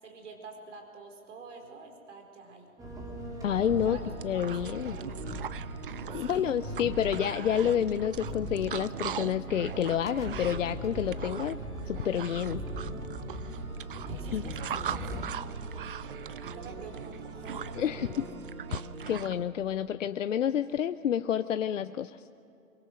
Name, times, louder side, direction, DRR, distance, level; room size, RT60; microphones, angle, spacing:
voice 1, 0.0-2.7 3.8-4.1 4.5-5.2 5.8-5.9 6.2-6.5 12.8-13.1 14.0-15.7 16.5-18.2, right 4 dB, 55° right, 3 dB, 4.7 m, -48 dB
sound 1, 2.8-15.2, equal, 10° right, 2.8 m, -40 dB
voice 2, 3.4-4.0 4.2-5.0 6.1-11.6 11.9-12.6 14.3-14.4 17.8-18.1 18.7-22.2, left 9 dB, 60° left, 11 dB, 0.7 m, -29 dB
sound 2, 3.4-19.4, right 3 dB, 80° right, 2.5 m, -43 dB
sound 3, 3.7-3.8 4.0-19.3, right 9 dB, 40° right, 0.4 m, -41 dB
23.5 x 22.5 x 6.4 m, 2.7 s
figure-of-eight pair, 130°, 42 cm